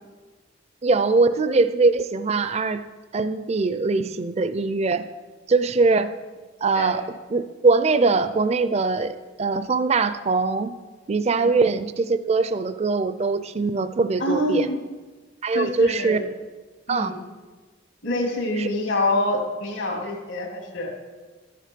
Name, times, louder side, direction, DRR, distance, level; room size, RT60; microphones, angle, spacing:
voice 1, 0.8-2.8 3.1-5.0 5.5-6.1 6.6-7.0 7.3-10.7 11.1-14.7 15.4-16.2 16.9-17.2 18.5-18.7, right 3 dB, 35° right, 12 dB, 0.4 m, -22 dB
voice 2, 14.2-14.8 15.5-16.1 16.9-17.1 18.0-20.9, left 1 dB, 80° left, 1 dB, 2.2 m, -26 dB
12.5 x 6.6 x 5.1 m, 1.3 s
head